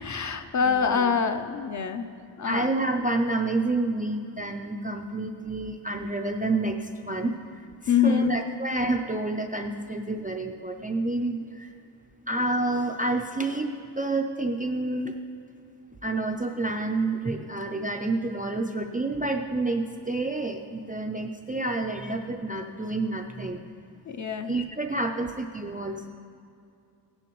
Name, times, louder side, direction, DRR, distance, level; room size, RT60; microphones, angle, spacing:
voice 1, 0.0-2.1 2.4-2.7 7.9-8.4 24.1-24.6, left 6 dB, 40° left, 8 dB, 0.5 m, -25 dB
voice 2, 0.7-1.1 2.4-11.7 12.3-15.2 16.0-23.6 24.5-26.1, right 2 dB, 20° right, 3 dB, 0.3 m, -29 dB
16.0 x 10.5 x 3.0 m, 2.4 s
wide cardioid pair, 155°, 45 cm